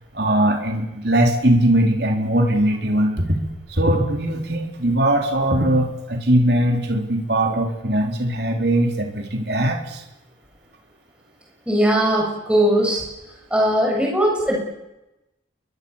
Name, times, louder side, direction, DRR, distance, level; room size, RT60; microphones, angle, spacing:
voice 1, 0.1-3.4 3.7-10.0, right 1 dB, 55° right, 2 dB, 4.0 m, -20 dB
voice 2, 11.7-13.0 13.5-14.6, right 1 dB, 5° right, -2 dB, 7.7 m, -19 dB
29.0 x 22.0 x 7.4 m, 0.95 s
head